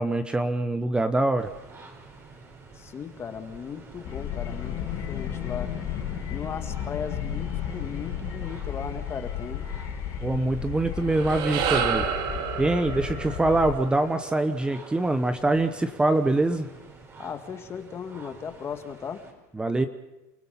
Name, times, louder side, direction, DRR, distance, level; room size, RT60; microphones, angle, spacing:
voice 1, 0.0-1.5 10.2-12.1 12.6-16.7 19.5-19.9, right 2 dB, 10° right, 10 dB, 0.9 m, -24 dB
sound 1, 1.4-19.3, right 3 dB, 30° right, 4.5 m, -47 dB
voice 2, 2.8-5.7 6.3-9.6 17.2-19.2, left 7 dB, 30° left, 8 dB, 1.8 m, -37 dB
sound 2, 4.0-13.7, left 9 dB, 50° left, 2.4 m, -33 dB
sound 3, 10.9-15.4, right 7 dB, 55° right, 2.3 m, -31 dB
29.5 x 17.0 x 5.7 m, 1.0 s
supercardioid pair, 115°, 9 cm